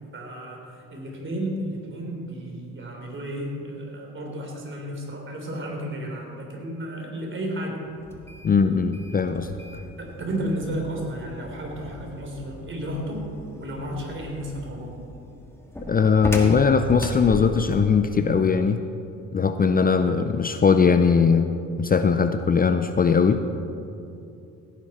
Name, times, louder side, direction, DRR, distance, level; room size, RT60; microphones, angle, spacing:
voice 1, 0.1-7.8 10.0-13.3 13.6-14.9, right 1 dB, 40° right, 0 dB, 3.4 m, -33 dB
sound 1, 8.0-17.9, left 1 dB, 10° left, 1.8 m, -37 dB
voice 2, 8.4-9.6 15.9-18.8 19.3-21.5 21.8-23.4, left 5 dB, 30° left, 8 dB, 0.5 m, -20 dB
17.0 x 10.5 x 4.3 m, 2.7 s
cardioid pair, 90°, 30 cm